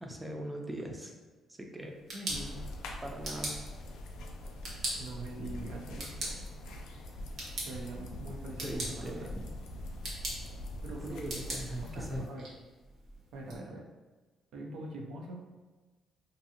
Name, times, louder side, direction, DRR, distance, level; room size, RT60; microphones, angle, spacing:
voice 1, 0.0-1.1 1.6-1.9 3.0-3.6 8.6-9.4 11.1-12.3, right 1 dB, 10° right, 2 dB, 0.4 m, -40 dB
sound 1, 1.8-13.6, right 1 dB, 65° right, 0.9 m, -43 dB
voice 2, 2.1-2.6 5.0-6.4 7.6-9.3 10.8-11.2 11.5-12.5 13.3-13.8 14.5-15.5, right 2 dB, 85° right, 0 dB, 0.5 m, -43 dB
sound 2, 2.3-12.3, left 1 dB, 85° left, 0.3 m, -43 dB
2.6 x 2.4 x 2.7 m, 1.3 s
cardioid pair, 90°, 0 cm